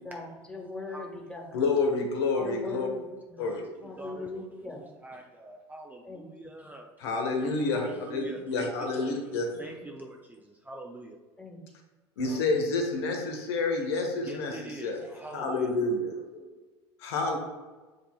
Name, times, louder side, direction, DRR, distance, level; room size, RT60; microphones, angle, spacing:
voice 1, 0.0-1.6 2.4-3.5 3.8-4.9 6.0-6.5 8.2-8.3 9.5-9.7 11.4-11.6, left 2 dB, 5° left, -1 dB, 1.2 m, -41 dB
voice 2, 1.5-2.9 3.4-3.6 7.0-9.5 12.2-15.1 15.3-16.5 17.0-17.4, left 3 dB, 70° left, 2 dB, 0.9 m, -29 dB
voice 3, 4.0-6.9 7.7-9.2 9.6-11.2 12.2-12.6 14.2-15.7, right 2 dB, 10° right, 2 dB, 0.5 m, -44 dB
7.8 x 2.7 x 2.3 m, 1.3 s
hypercardioid pair, 75°, 14 cm